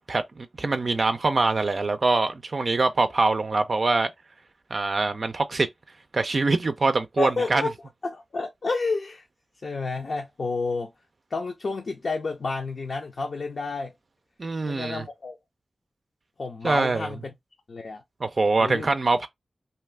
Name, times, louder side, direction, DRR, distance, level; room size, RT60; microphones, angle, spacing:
voice 1, 0.0-4.1 4.7-5.7 6.1-7.7 14.4-15.0 16.6-17.1 18.2-19.3, right 3 dB, 55° right, 0.4 m, -24 dB
voice 2, 7.2-7.7 8.0-9.2 9.6-10.9 11.3-13.9 14.7-15.4 16.4-17.3 17.7-18.0 18.6-18.9, left 3 dB, 70° left, 0.6 m, -30 dB
2.7 x 2.4 x 3.3 m
cardioid pair, 60°, 0 cm